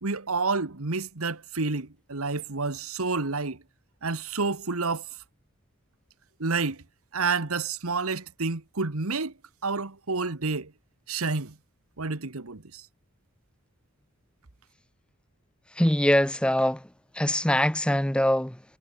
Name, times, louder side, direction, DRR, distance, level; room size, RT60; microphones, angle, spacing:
voice 1, 0.0-3.6 4.0-5.0 6.4-6.8 7.1-9.3 9.6-10.7 11.1-11.5 12.0-12.8, right 4 dB, 80° right, 1.6 m, -29 dB
voice 2, 15.7-16.9 17.1-18.6, left 1 dB, 5° left, 0.7 m, -23 dB
head